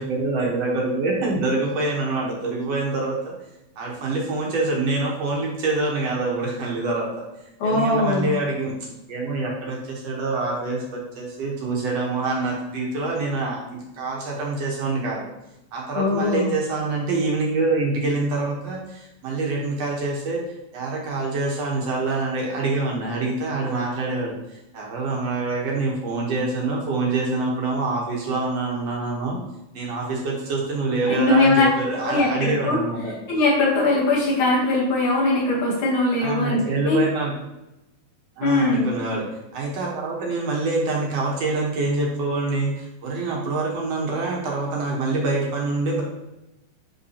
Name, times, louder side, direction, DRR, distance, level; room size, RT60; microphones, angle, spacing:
voice 1, 0.0-3.3 3.8-7.3 7.6-8.7 9.1-15.3 15.7-20.4 20.7-29.4 29.7-33.1 36.2-37.3 38.4-39.3 39.5-46.0, right 3 dB, 60° right, -2 dB, 1.8 m, -25 dB
voice 2, 7.6-8.3 15.9-16.5 31.1-31.7 32.0-32.8 33.3-37.0 38.4-38.9, left 2 dB, 65° left, -6 dB, 3.5 m, -21 dB
10.0 x 3.6 x 2.8 m, 0.96 s
omnidirectional pair, 4.0 m